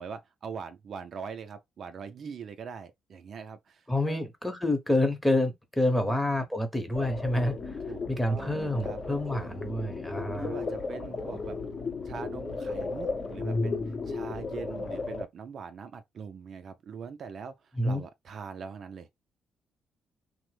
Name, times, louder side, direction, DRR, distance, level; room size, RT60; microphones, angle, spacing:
voice 1, 0.0-4.2 5.9-6.3 7.9-9.0 9.4-9.6 10.3-11.6 12.0-19.1, right 6 dB, 55° right, 0.4 m, -42 dB
voice 2, 3.9-7.8 8.1-10.6 17.8-18.0, left 1 dB, 5° left, 0.8 m, -28 dB
sound 1, 6.9-15.2, left 3 dB, 40° left, 0.7 m, -34 dB
3.0 x 2.0 x 3.2 m
cardioid pair, 90°, 0 cm